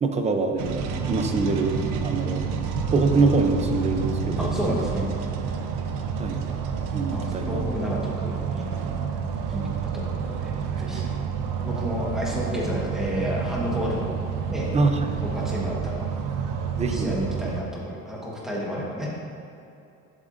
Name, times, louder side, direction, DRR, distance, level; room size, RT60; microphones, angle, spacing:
voice 1, 0.0-1.8 2.0-2.4 2.9-4.5 6.2-6.4 6.9-7.6 14.7-15.2 16.8-17.1, right 3 dB, 20° right, 5 dB, 0.5 m, -24 dB
sound 1, 0.6-17.6, right 6 dB, 85° right, 0.7 m, -29 dB
voice 2, 4.4-5.1 7.1-8.7 9.5-11.1 11.6-14.1 14.5-14.7 15.2-16.0 16.9-19.1, equal, ahead, -5 dB, 1.3 m, -31 dB
11.5 x 7.3 x 2.6 m, 2.6 s
cardioid pair, 165°, 32 cm